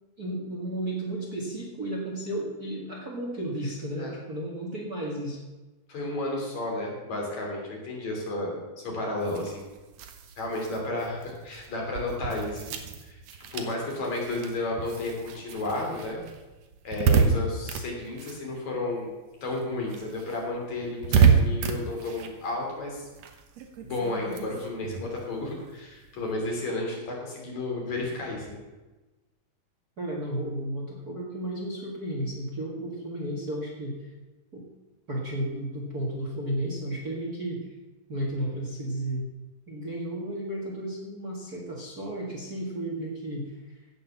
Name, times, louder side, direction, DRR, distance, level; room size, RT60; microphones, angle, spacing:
voice 1, 0.2-5.4 30.0-34.0 34.5-34.6 35.1-37.7 38.1-39.2 39.7-43.6, right 1 dB, 30° right, -2 dB, 2.1 m, -33 dB
voice 2, 5.9-9.7 10.4-12.7 13.0-13.2 13.5-16.2 16.8-19.1 19.4-23.0 23.8-28.6, left 2 dB, 55° left, -1 dB, 4.2 m, -32 dB
sound 1, 9.2-19.1 19.4-26.3, right 6 dB, 65° right, 1.9 m, -29 dB
16.5 x 6.9 x 7.1 m, 1.2 s
omnidirectional pair, 4.0 m